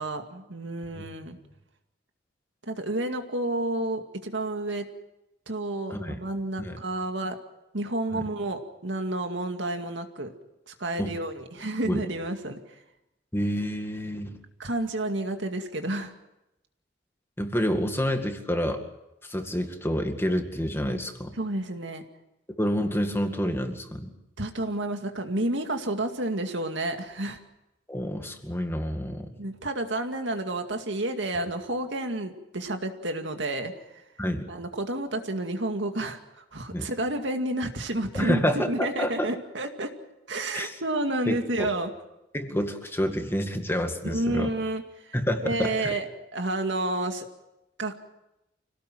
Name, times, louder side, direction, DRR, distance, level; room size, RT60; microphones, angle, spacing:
voice 1, 0.0-1.4 2.7-4.9 5.5-7.4 7.7-10.3 10.7-12.6 14.6-16.1 21.4-22.0 24.4-27.4 29.4-34.0 34.5-39.9 40.3-41.9 44.0-45.1 45.4-47.3 47.8-48.1, right 1 dB, 75° right, 5 dB, 2.3 m, -30 dB
voice 2, 13.3-14.4 17.4-18.8 19.2-21.3 22.6-24.1 27.9-29.3 34.2-34.5 36.7-36.9 38.1-39.3 40.5-40.7 41.3-41.7 42.3-44.5 45.1-45.9, equal, 15° left, 5 dB, 2.1 m, -28 dB
26.0 x 18.0 x 7.7 m, 0.91 s
head